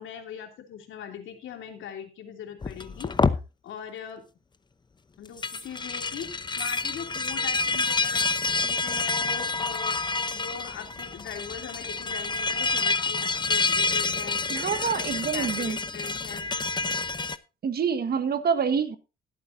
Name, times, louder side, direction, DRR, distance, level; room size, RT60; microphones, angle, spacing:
voice 1, 0.0-3.1 3.6-4.2 5.2-14.5 14.8-16.5, left 8 dB, 80° left, 2.9 m, -41 dB
sound 1, 2.6-3.4 5.3-17.4, left 3 dB, 20° left, 0.8 m, -28 dB
voice 2, 14.5-15.8 17.6-19.0, right 6 dB, 50° right, 1.5 m, -26 dB
20.0 x 8.6 x 2.7 m
cardioid pair, 90°, 20 cm